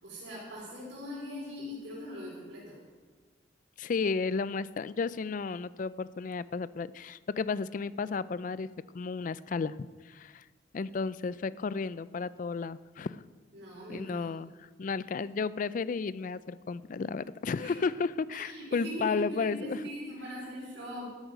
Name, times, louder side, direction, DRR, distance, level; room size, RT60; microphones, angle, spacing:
voice 1, 0.0-2.8 13.5-14.3 17.6-17.7 18.3-21.1, equal, 75° right, -8 dB, 4.3 m, -40 dB
voice 2, 3.8-8.7 8.9-9.8 10.0-10.4 10.7-13.2 13.9-19.8, left 4 dB, 45° left, 17 dB, 0.3 m, -33 dB
13.0 x 12.0 x 5.1 m, 1.4 s
head